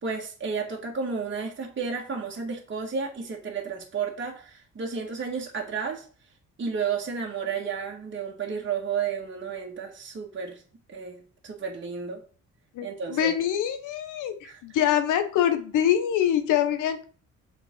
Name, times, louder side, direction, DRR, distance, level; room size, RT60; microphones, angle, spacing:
voice 1, 0.0-6.0 6.6-10.6 10.9-12.2 12.8-13.4 14.4-14.6, right 5 dB, 40° right, 0 dB, 2.0 m, -32 dB
voice 2, 12.7-17.0, left 10 dB, 90° left, 9 dB, 1.2 m, -25 dB
7.2 x 5.4 x 4.6 m, 0.41 s
cardioid pair, 90°, 30 cm